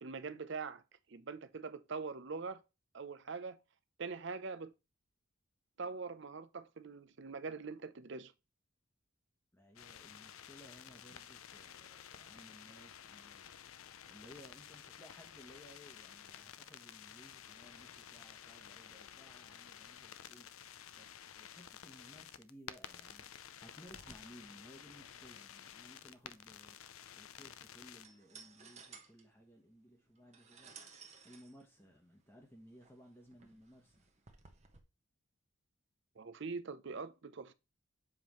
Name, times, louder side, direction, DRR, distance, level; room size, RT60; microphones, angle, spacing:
voice 1, 0.0-0.8 1.1-2.6 2.9-3.6 4.0-4.7 5.8-8.3 36.2-37.5, right 4 dB, 55° right, 0.6 m, -43 dB
voice 2, 9.5-30.8 31.2-34.1, equal, 10° left, 1.0 m, -59 dB
sound 1, 9.8-28.0, left 9 dB, 80° left, 0.5 m, -53 dB
sound 2, 23.9-34.8, right 5 dB, 30° right, 1.0 m, -60 dB
7.3 x 5.1 x 3.0 m
head